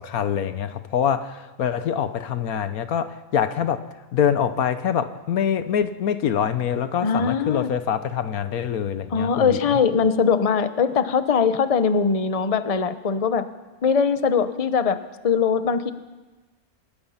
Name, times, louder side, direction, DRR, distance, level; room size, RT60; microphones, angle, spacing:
voice 1, 0.0-3.8 4.1-9.6, left 8 dB, 75° left, 11 dB, 1.4 m, -25 dB
voice 2, 7.0-7.7 9.1-13.5 13.8-15.0 15.2-15.9, left 6 dB, 30° left, 11 dB, 0.9 m, -21 dB
26.5 x 20.5 x 5.7 m, 1.2 s
omnidirectional pair, 1.5 m